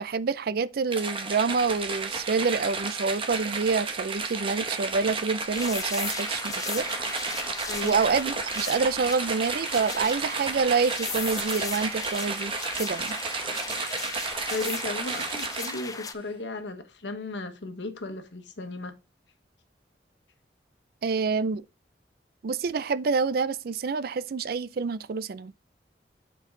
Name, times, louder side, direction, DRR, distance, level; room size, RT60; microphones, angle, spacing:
voice 1, 0.0-6.9 7.8-13.1 21.0-21.6 22.4-25.5, right 5 dB, 55° right, 0.4 m, -27 dB
sound 1, 0.9-16.0, right 4 dB, 30° right, 1.0 m, -32 dB
sound 2, 5.5-16.1, left 5 dB, 20° left, 0.5 m, -37 dB
voice 2, 7.6-8.0 14.5-19.0, left 2 dB, 75° left, 1.2 m, -35 dB
8.8 x 4.6 x 3.7 m
head